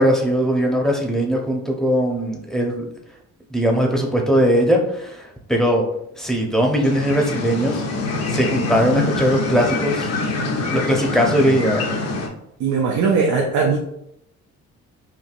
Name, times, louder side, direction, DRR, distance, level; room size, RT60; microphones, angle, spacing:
voice 1, 0.0-2.8 3.5-5.8 6.2-7.8 8.3-10.1 10.7-11.8, equal, ahead, 0 dB, 0.8 m, -19 dB
sound 1, 6.8-12.3, left 3 dB, 55° left, 0.7 m, -25 dB
voice 2, 12.6-13.8, right 5 dB, 70° right, 0 dB, 0.6 m, -19 dB
4.5 x 2.6 x 2.5 m, 0.77 s
cardioid pair, 90°, 30 cm